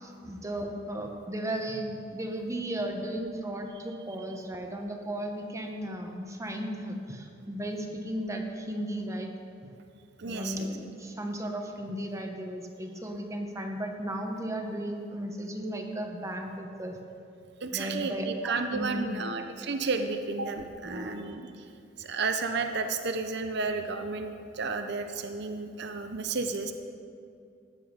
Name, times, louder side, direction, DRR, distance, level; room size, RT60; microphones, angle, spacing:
voice 1, 0.0-9.3 10.2-17.0 17.7-19.2 20.8-21.3, right 1 dB, 15° right, 3 dB, 1.1 m, -35 dB
voice 2, 10.2-10.7 17.6-21.6 22.0-26.7, right 4 dB, 60° right, 6 dB, 0.8 m, -32 dB
15.0 x 10.0 x 5.2 m, 2.5 s
head